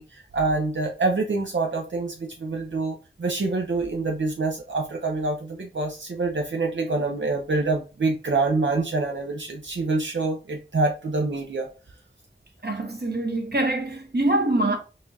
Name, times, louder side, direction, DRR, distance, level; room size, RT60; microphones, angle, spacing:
voice 1, 0.0-11.7, right 3 dB, 75° right, 0.5 m, -26 dB
voice 2, 12.6-14.8, right 2 dB, 55° right, 1.0 m, -24 dB
4.8 x 2.3 x 2.6 m
wide cardioid pair, 45°, 20 cm